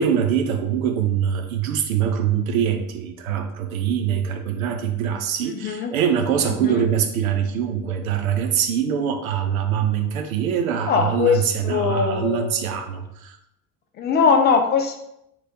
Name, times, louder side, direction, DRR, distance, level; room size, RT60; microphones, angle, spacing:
voice 1, 0.0-13.4, right 8 dB, 70° right, 5 dB, 0.6 m, -23 dB
voice 2, 5.5-5.9 6.5-6.8 10.9-12.5 14.0-15.0, left 6 dB, 25° left, 4 dB, 0.4 m, -21 dB
2.9 x 2.9 x 3.8 m, 0.81 s
figure-of-eight pair, 60°, 43 cm